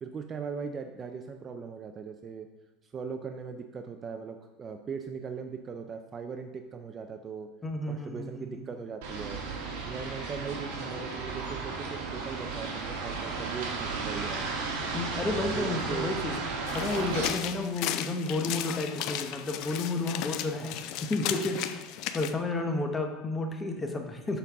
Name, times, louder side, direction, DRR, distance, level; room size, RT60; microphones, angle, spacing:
voice 1, 0.0-2.5 2.8-7.5 7.9-9.4 9.9-14.4 15.3-16.1, right 5 dB, 25° right, 6 dB, 0.4 m, -39 dB
voice 2, 7.6-8.6 14.9-16.4 16.7-21.8 22.1-24.4, left 2 dB, 15° left, 4 dB, 0.8 m, -31 dB
sound 1, 9.0-17.3, right 4 dB, 70° right, 1.4 m, -34 dB
sound 2, 16.7-22.3, left 11 dB, 55° left, 0.4 m, -35 dB
6.9 x 5.3 x 3.5 m, 1.2 s
supercardioid pair, 145°, 0 cm